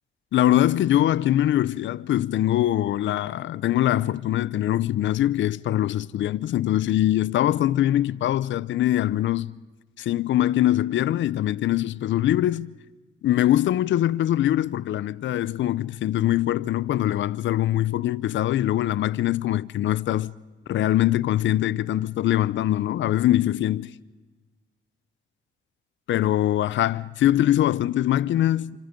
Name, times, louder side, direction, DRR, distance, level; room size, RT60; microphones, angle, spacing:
voice 1, 0.3-9.5 10.0-12.7 13.2-20.3 20.7-23.9 26.1-28.8, left 13 dB, 70° left, 0.7 m, -23 dB
29.0 x 26.0 x 5.3 m
cardioid pair, 90°, 20 cm